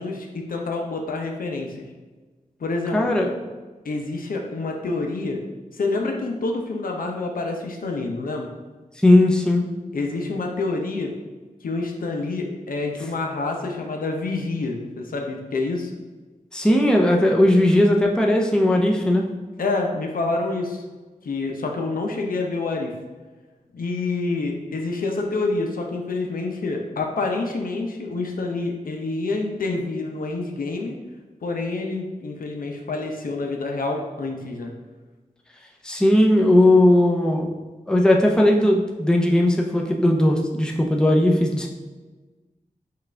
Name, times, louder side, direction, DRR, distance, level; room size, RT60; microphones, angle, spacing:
voice 1, 0.0-1.8 2.6-3.1 3.8-5.4 5.7-8.5 9.9-11.2 11.6-15.9 19.6-20.8 21.2-23.0 23.7-30.9 31.4-34.7, left 3 dB, 75° left, 2 dB, 0.6 m, -27 dB
voice 2, 2.9-3.3 9.0-9.7 16.5-19.3 35.8-37.5 37.9-41.7, left 1 dB, 5° left, 0 dB, 0.6 m, -17 dB
5.7 x 2.5 x 3.3 m, 1.3 s
wide cardioid pair, 75°, 15 cm